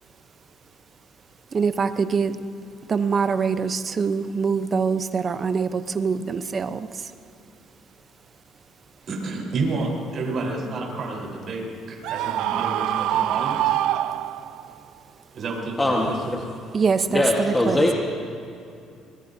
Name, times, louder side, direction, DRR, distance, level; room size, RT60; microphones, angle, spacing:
voice 1, 1.5-2.4 2.9-6.9 16.7-17.8, right 5 dB, 35° right, 11 dB, 0.6 m, -24 dB
voice 2, 9.0-13.8 15.3-16.4, right 3 dB, 50° right, -1 dB, 3.9 m, -30 dB
Screaming, 12.0-14.7, right 13 dB, 80° right, 0.4 m, -25 dB
voice 3, 17.1-17.9, left 1 dB, 10° left, -1 dB, 1.3 m, -21 dB
24.0 x 21.0 x 2.7 m, 2.6 s
cardioid pair, 135°, 0 cm